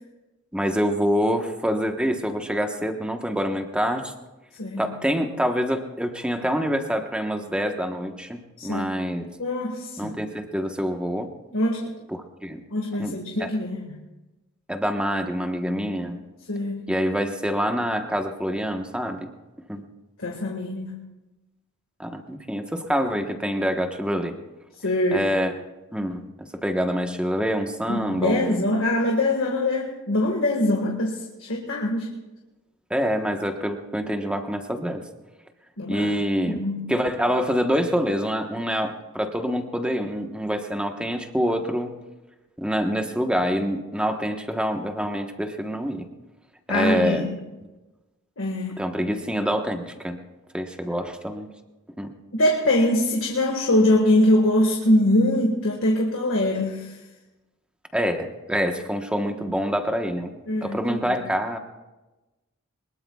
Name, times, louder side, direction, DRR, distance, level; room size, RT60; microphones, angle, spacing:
voice 1, 0.5-4.1 4.8-9.3 10.0-11.3 12.1-12.6 13.0-13.5 14.7-16.2 16.9-19.2 19.7-19.8 22.0-24.3 25.1-25.5 25.9-28.6 32.9-35.0 35.9-36.6 36.9-42.0 42.6-46.1 46.7-47.3 48.8-50.2 50.5-51.5 52.0-52.1 57.9-60.3 60.6-61.6, equal, 5° right, 4 dB, 1.2 m, -26 dB
voice 2, 9.4-10.1 11.5-11.9 12.7-14.0 16.5-16.8 20.2-20.9 24.8-25.3 27.9-32.1 35.8-36.1 36.4-36.8 46.7-47.4 48.4-48.8 52.3-57.0 60.5-61.2, left 1 dB, 65° left, 0 dB, 1.7 m, -23 dB
23.0 x 21.0 x 2.4 m, 1.1 s
head